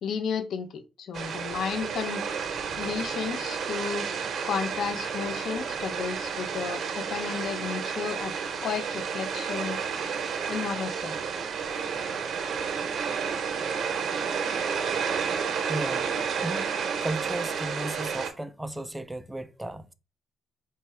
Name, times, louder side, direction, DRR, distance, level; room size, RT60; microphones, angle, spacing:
voice 1, 0.0-2.2 2.8-4.1 4.4-8.3 8.6-9.8 10.5-11.2, left 6 dB, 70° left, 0.5 m, -33 dB
sound 1, 1.1-18.3, right 6 dB, 60° right, 0.7 m, -31 dB
voice 2, 15.7-16.1 16.4-16.7 17.0-19.9, right 1 dB, 10° right, 0.3 m, -34 dB
4.3 x 2.2 x 3.2 m
cardioid pair, 90°, 0 cm